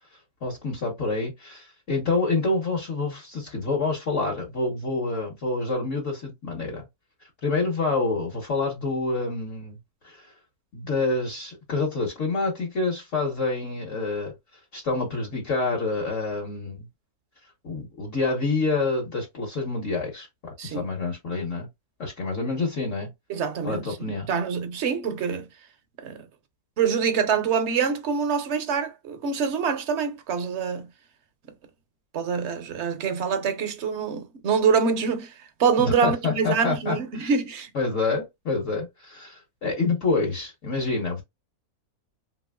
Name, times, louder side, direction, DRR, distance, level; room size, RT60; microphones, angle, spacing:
voice 1, 0.4-6.9 7.4-9.8 10.0-10.3 10.7-14.3 14.7-16.9 17.6-21.7 22.0-23.1 23.6-24.3 35.8-37.3 37.7-41.2, left 3 dB, 55° left, 1.4 m, -27 dB
voice 2, 23.3-25.5 26.0-26.2 26.8-30.9 32.1-35.3 35.6-37.7, right 6 dB, 55° right, 0.9 m, -25 dB
3.2 x 3.0 x 2.2 m
omnidirectional pair, 1.6 m